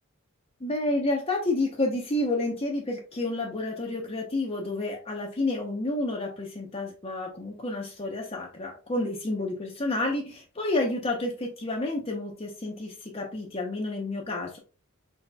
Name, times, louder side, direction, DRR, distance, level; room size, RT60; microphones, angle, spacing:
voice 1, 0.6-14.6, left 2 dB, 30° left, -1 dB, 0.8 m, -30 dB
4.9 x 4.1 x 2.3 m, 0.33 s
head